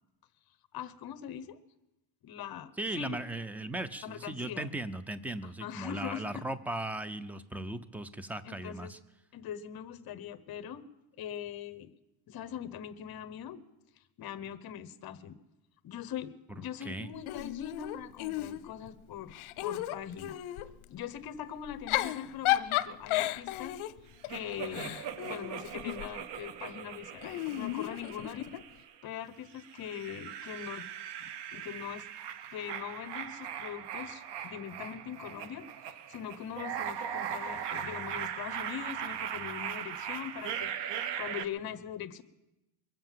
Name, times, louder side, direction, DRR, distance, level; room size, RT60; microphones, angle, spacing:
voice 1, 0.7-1.6 2.2-3.2 4.0-4.7 5.6-6.4 8.4-8.9 9.3-10.8 11.2-11.9 12.3-13.6 14.2-15.4 15.8-20.4 20.9-23.8 24.3-28.6 29.0-30.9 31.2-32.1 32.5-35.7 36.1-42.2, left 9 dB, 50° left, 12 dB, 1.0 m, -42 dB
voice 2, 2.8-9.0 16.8-17.1, right 1 dB, 5° right, 14 dB, 0.5 m, -37 dB
Giggle / Chuckle chortle, 17.3-18.9 19.3-20.7 21.7-26.1 27.2-28.6, left 15 dB, 80° left, 0.7 m, -34 dB
sound 1, 24.3-29.0 29.5-41.5, right 9 dB, 55° right, 0.9 m, -39 dB
23.0 x 7.8 x 7.4 m, 0.97 s
cardioid pair, 145°, 48 cm